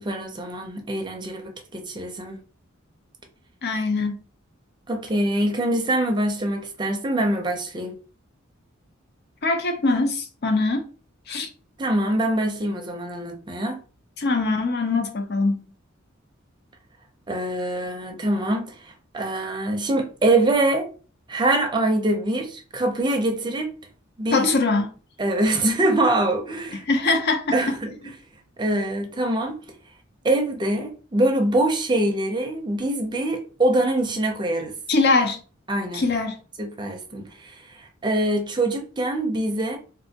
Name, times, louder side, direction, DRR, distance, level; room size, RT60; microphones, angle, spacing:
voice 1, 0.0-2.4 4.9-8.0 11.8-13.8 17.3-20.9 21.3-23.7 24.2-24.5 25.2-26.8 27.5-27.9 28.6-29.6 30.2-34.7 35.7-36.0 36.6-39.8, right 1 dB, 20° right, 0.5 m, -24 dB
voice 2, 3.6-4.2 9.4-10.9 11.3-11.5 14.2-15.7 24.3-24.9 26.7-27.7 34.9-35.4 35.9-36.4, left 3 dB, 55° left, 0.6 m, -22 dB
3.3 x 2.5 x 2.8 m
head